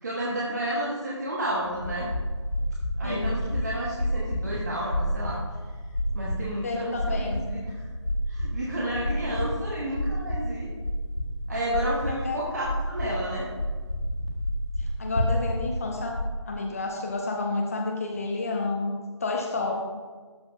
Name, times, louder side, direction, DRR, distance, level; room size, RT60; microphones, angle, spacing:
voice 1, 0.0-2.1 3.0-5.4 6.1-7.9 8.3-10.7 11.5-13.5 19.6-19.8, right 1 dB, 35° right, -4 dB, 1.1 m, -31 dB
sound 1, 1.6-16.3, equal, 75° left, 2.1 m, -30 dB
voice 2, 3.0-3.3 6.6-7.4 12.1-12.4 14.8-16.2 16.5-18.9 19.2-19.8, left 3 dB, 30° left, 0 dB, 0.7 m, -30 dB
13.0 x 5.9 x 2.5 m, 1.5 s
figure-of-eight pair, 160°, 16 cm